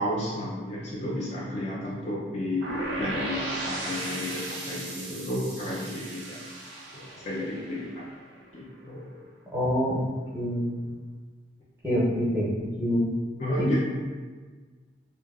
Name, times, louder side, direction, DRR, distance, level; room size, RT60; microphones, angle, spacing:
voice 1, 0.0-6.4 6.9-8.1 8.5-9.1 13.4-13.8, left 1 dB, 30° left, -6 dB, 0.3 m, -32 dB
sound 1, 2.6-8.5, right 1 dB, 60° right, 0.5 m, -36 dB
voice 2, 9.5-9.9 10.3-10.9 11.8-13.1 13.6-13.8, equal, 10° right, -9 dB, 0.6 m, -26 dB
2.6 x 2.2 x 2.3 m, 1.5 s
head